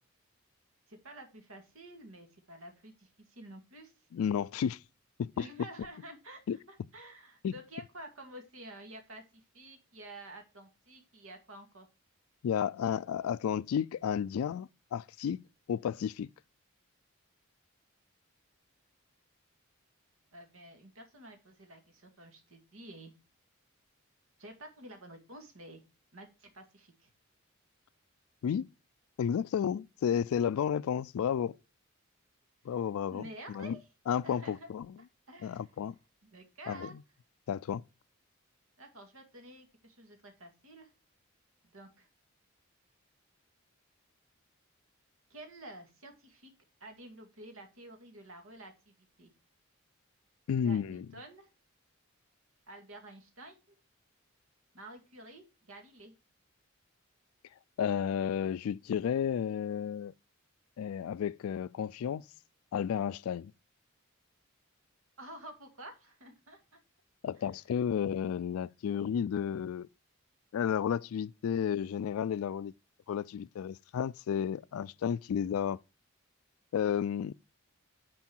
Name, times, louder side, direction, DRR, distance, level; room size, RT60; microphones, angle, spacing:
voice 1, 0.9-3.9 5.4-11.9 20.3-23.1 24.4-25.8 26.1-27.1 33.1-33.9 34.2-34.7 35.0-35.7 36.2-37.0 38.8-40.9 41.6-42.1 45.3-46.5 46.8-49.3 50.6-51.5 52.7-53.7 54.7-56.1 65.2-66.8 67.4-67.5, right 1 dB, 80° right, 2.1 m, -50 dB
voice 2, 4.1-4.8 5.2-5.4 6.5-6.6 7.4-7.5 12.4-16.3 28.4-28.7 29.2-31.6 32.7-33.2 33.5-33.8 34.1-34.9 35.4-36.0 36.7-36.9 37.5-37.8 50.5-51.1 57.8-60.1 60.8-62.2 62.7-63.5 67.2-69.9 70.5-72.7 73.1-75.8 76.7-77.3, left 8 dB, 85° left, 0.3 m, -32 dB
9.5 x 4.5 x 4.4 m
head